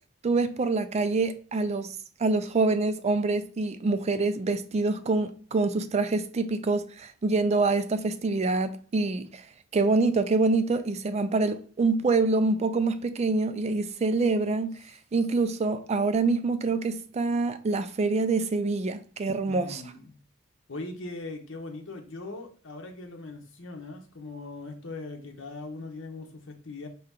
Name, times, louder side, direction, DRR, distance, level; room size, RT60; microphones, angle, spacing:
voice 1, 0.2-9.4 9.7-14.8 15.1-19.8, right 3 dB, 35° right, 0.4 m, -26 dB
voice 2, 19.5-20.2 20.7-26.9, left 3 dB, 70° left, 0.9 m, -40 dB
4.6 x 2.8 x 3.5 m
head